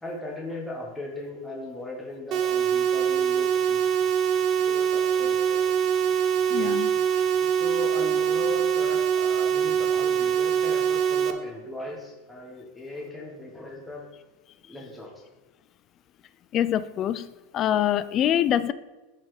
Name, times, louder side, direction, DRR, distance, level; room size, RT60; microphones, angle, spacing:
voice 1, 0.0-3.9 4.2-4.3 4.6-5.6 6.9-14.1 14.6-15.1, left 2 dB, 5° left, -2 dB, 1.1 m, -38 dB
sound 1, 2.3-11.3, right 8 dB, 45° right, 0.7 m, -23 dB
voice 2, 6.5-6.9 16.5-17.3 17.5-18.7, left 10 dB, 35° left, 15 dB, 0.3 m, -24 dB
12.0 x 4.1 x 3.2 m, 1.2 s
supercardioid pair, 130°, 0 cm